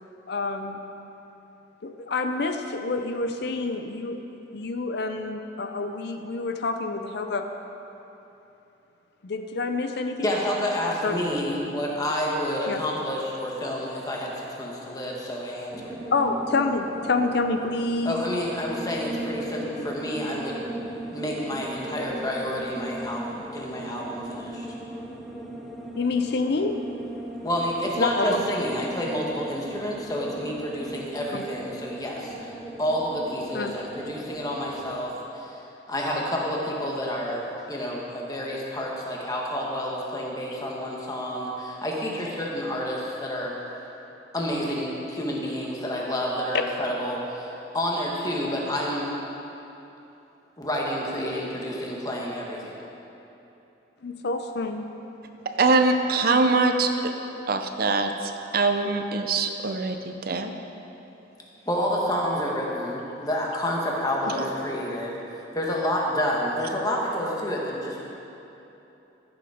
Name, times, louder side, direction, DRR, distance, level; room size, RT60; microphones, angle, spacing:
voice 1, 0.3-0.8 1.8-4.2 4.5-7.5 9.2-10.3 11.0-11.2 12.7-12.8 16.1-18.2 26.0-26.7 28.0-28.4 31.3-31.5 33.5-33.7 54.0-54.8, left 3 dB, 60° left, 6 dB, 0.5 m, -27 dB
voice 2, 10.2-16.0 18.0-20.6 21.1-24.7 27.4-32.5 32.8-35.5 35.9-43.5 44.3-49.1 50.6-52.7 61.6-68.0, equal, 20° left, -3 dB, 1.4 m, -29 dB
sound 1, 15.7-35.0, right 1 dB, ahead, 0.7 m, -38 dB
voice 3, 55.6-57.1 57.5-60.5, right 3 dB, 50° right, 6 dB, 0.6 m, -23 dB
14.5 x 7.0 x 5.0 m, 3.0 s
head